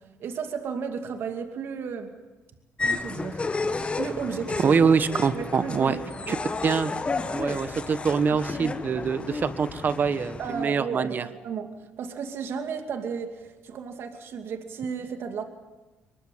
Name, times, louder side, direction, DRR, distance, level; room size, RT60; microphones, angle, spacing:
voice 1, 0.2-2.1 2.8-3.4 3.9-4.8 5.3-6.0 6.3-6.4 8.3-8.4 10.4-11.2 11.4-15.5, right 6 dB, 60° right, 5 dB, 2.5 m, -33 dB
sound 1, 2.8-10.6, left 3 dB, 25° left, 1.4 m, -32 dB
voice 2, 4.6-6.0 6.3-6.4 6.6-6.9 7.2-11.2, right 6 dB, 45° right, 12 dB, 1.5 m, -24 dB
23.0 x 21.5 x 7.6 m, 1.1 s
supercardioid pair, 80°, 5 cm